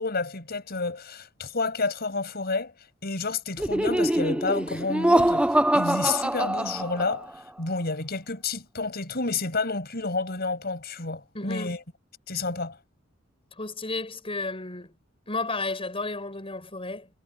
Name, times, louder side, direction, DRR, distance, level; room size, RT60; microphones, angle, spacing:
voice 1, 0.0-2.7 3.0-5.5 5.7-7.3 7.6-11.8 12.3-12.8, left 3 dB, 55° left, 6.0 m, -30 dB
Laughter, 3.6-7.3, right 1 dB, 5° right, 0.4 m, -24 dB
voice 2, 11.3-11.8 13.6-14.9 15.3-17.1, left 3 dB, 30° left, 5.9 m, -32 dB
head